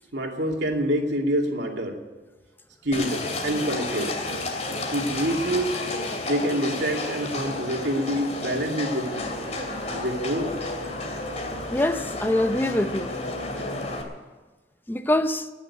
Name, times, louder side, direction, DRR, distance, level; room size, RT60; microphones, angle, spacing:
voice 1, 0.1-2.0 2.8-4.2 4.9-5.8 6.2-9.3 9.9-10.5, right 1 dB, 75° right, 2.6 m, -26 dB
Livestock farm animals working animals, 2.9-14.0, left 2 dB, 40° left, 2.6 m, -32 dB
voice 2, 11.7-13.3 14.9-15.5, left 1 dB, 10° left, 0.8 m, -24 dB
20.0 x 7.1 x 9.7 m
head